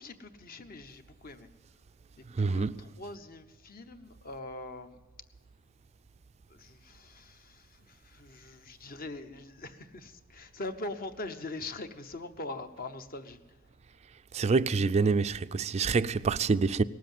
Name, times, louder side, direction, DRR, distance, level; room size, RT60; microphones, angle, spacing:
voice 1, 0.0-1.5 2.2-5.0 6.5-13.6, left 2 dB, 45° left, 0.9 m, -42 dB
voice 2, 2.4-2.8 14.3-16.8, right 4 dB, 30° right, 0.3 m, -26 dB
18.5 x 7.6 x 9.1 m
head